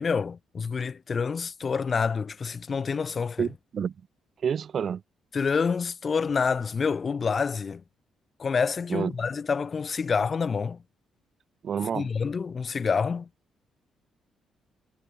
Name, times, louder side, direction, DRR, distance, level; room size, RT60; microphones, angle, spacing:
voice 1, 0.0-3.5 5.3-7.8 8.4-10.8 11.9-13.3, left 5 dB, 40° left, 3.8 m, -27 dB
voice 2, 4.4-5.0 8.9-9.1 11.6-12.1, right 7 dB, 55° right, 3.6 m, -28 dB
cardioid pair, 90°, 0 cm